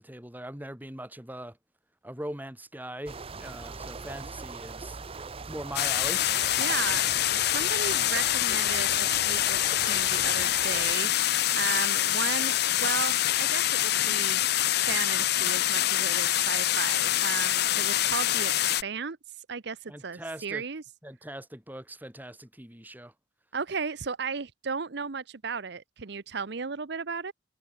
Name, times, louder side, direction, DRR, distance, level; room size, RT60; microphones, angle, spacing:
voice 1, 0.0-1.6 2.0-5.0 5.5-6.2 19.9-20.6 21.0-23.1, right 1 dB, 10° right, 3.1 m, -41 dB
sound 1, 3.0-11.0, right 4 dB, 30° right, 0.7 m, -41 dB
sound 2, 5.8-18.8, left 13 dB, 60° left, 0.6 m, -25 dB
voice 2, 6.6-7.1 7.4-11.1 11.5-14.4 14.7-20.8 23.5-27.3, right 5 dB, 60° right, 0.8 m, -35 dB
head